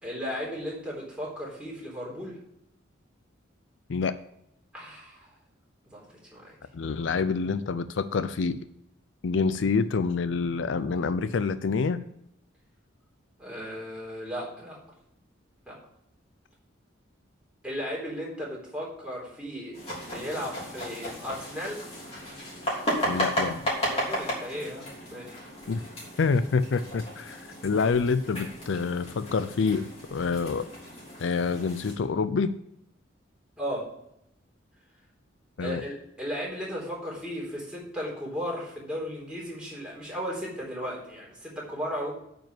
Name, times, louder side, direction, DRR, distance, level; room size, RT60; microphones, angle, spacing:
voice 1, 0.0-2.4 4.7-5.3 5.9-6.1 6.3-6.6 13.4-14.8 15.7-15.8 17.6-19.8 20.0-21.9 23.9-25.4 33.6-33.9 35.6-42.1, equal, 5° right, -5 dB, 3.8 m, -35 dB
voice 2, 6.7-8.6 9.2-12.0 23.0-23.7 25.7-25.8 26.2-30.7 31.2-32.5 35.6-35.8, left 4 dB, 70° left, 13 dB, 0.5 m, -27 dB
sound 1, 19.7-31.9, equal, 30° left, 3.6 m, -34 dB
9.0 x 5.3 x 7.7 m, 0.77 s
head